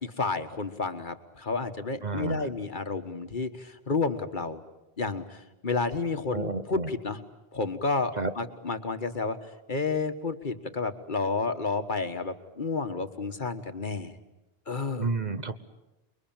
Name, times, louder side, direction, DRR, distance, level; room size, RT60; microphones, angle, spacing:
voice 1, 0.0-4.6 5.0-7.2 7.5-14.2 14.7-15.1, left 4 dB, 50° left, 8 dB, 1.6 m, -31 dB
voice 2, 2.0-2.5 6.3-6.9 8.2-8.3 15.0-15.6, right 3 dB, 45° right, 10 dB, 1.2 m, -30 dB
28.5 x 22.0 x 8.9 m, 0.96 s
omnidirectional pair, 1.1 m